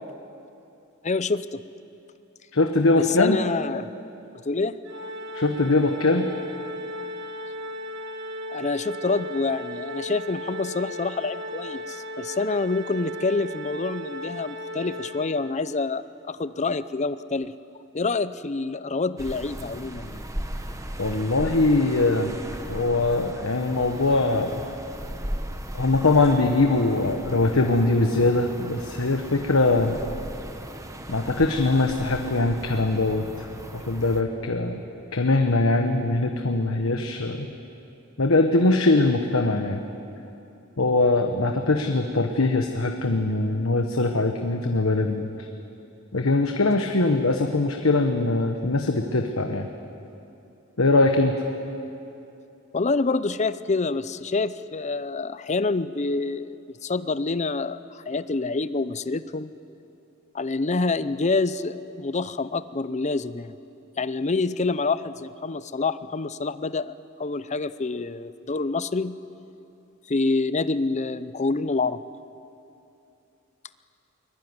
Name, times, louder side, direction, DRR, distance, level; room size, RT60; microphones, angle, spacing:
voice 1, 1.0-1.6 2.9-3.9 4.4-4.8 8.5-17.5 17.9-20.2 52.7-59.5 60.3-63.5 64.0-66.9 67.2-69.2 70.1-72.0, left 3 dB, 35° left, 14 dB, 0.6 m, -27 dB
voice 2, 2.5-3.4 5.3-6.3 21.0-22.3 22.7-24.6 25.7-29.9 31.1-33.5 33.7-34.8 35.1-37.5 38.2-39.8 40.8-45.3 46.1-49.7 50.8-51.3, left 2 dB, 85° left, 4 dB, 1.3 m, -22 dB
Organ, 4.9-15.7, left 1 dB, 55° right, 1.9 m, -36 dB
sound 1, 19.2-34.2, right 1 dB, 15° right, 1.5 m, -37 dB
23.0 x 20.5 x 9.7 m, 2.8 s
head